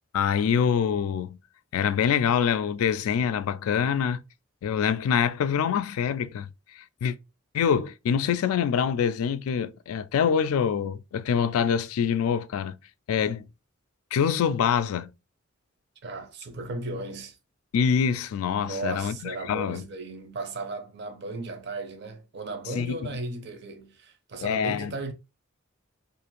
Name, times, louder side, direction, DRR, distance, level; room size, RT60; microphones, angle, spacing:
voice 1, 0.1-1.4 1.7-4.2 4.6-6.5 6.7-7.2 7.5-12.8 13.1-13.4 14.1-15.1 17.7-19.8 22.7-23.0 24.4-24.9, left 7 dB, 80° left, 0.3 m, -25 dB
voice 2, 16.0-17.4 18.6-25.1, right 2 dB, 50° right, 0.5 m, -36 dB
2.5 x 2.5 x 2.9 m
head